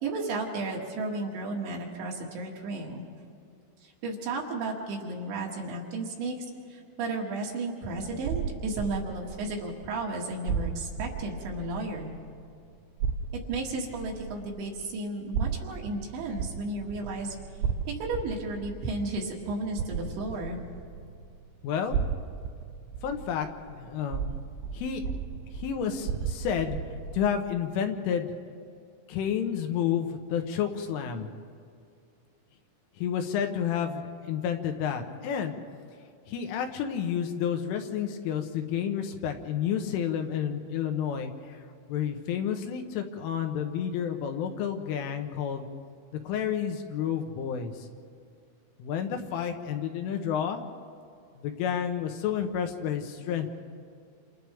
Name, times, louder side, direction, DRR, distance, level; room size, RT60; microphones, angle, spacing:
voice 1, 0.0-3.0 3.8-6.4 6.7-12.1 13.5-17.4 18.0-20.6, right 2 dB, 65° right, -2 dB, 4.3 m, -33 dB
sound 1, 7.9-12.6 13.0-21.5 21.9-27.3, right 6 dB, 85° right, 2.4 m, -35 dB
voice 2, 21.6-22.0 23.0-24.3 24.7-25.0 25.5-26.8 27.1-28.3 29.1-31.3 33.0-35.6 36.3-41.6 41.9-45.7 46.3-47.9 48.8-50.6 51.4-53.5, left 8 dB, 80° left, 5 dB, 3.5 m, -30 dB
29.0 x 27.5 x 3.6 m, 2.3 s
omnidirectional pair, 5.8 m